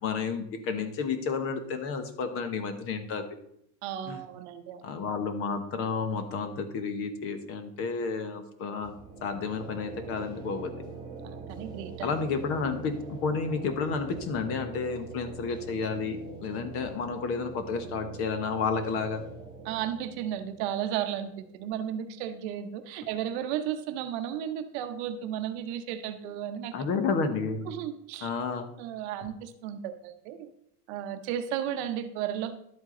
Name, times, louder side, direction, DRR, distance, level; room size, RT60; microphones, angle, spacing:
voice 1, 0.0-3.3 4.1-4.2 4.8-9.0 9.2-10.7 12.0-19.2 26.7-27.6 28.2-28.7, left 5 dB, 30° left, 9 dB, 1.0 m, -31 dB
voice 2, 3.8-4.9 11.2-12.1 19.6-26.7 27.7-28.3 28.8-30.5 30.9-32.6, right 10 dB, 45° right, 8 dB, 1.0 m, -34 dB
sound 1, 8.8-22.5, right 4 dB, 10° right, 2.0 m, -44 dB
11.5 x 8.0 x 3.8 m, 0.72 s
supercardioid pair, 170°, 47 cm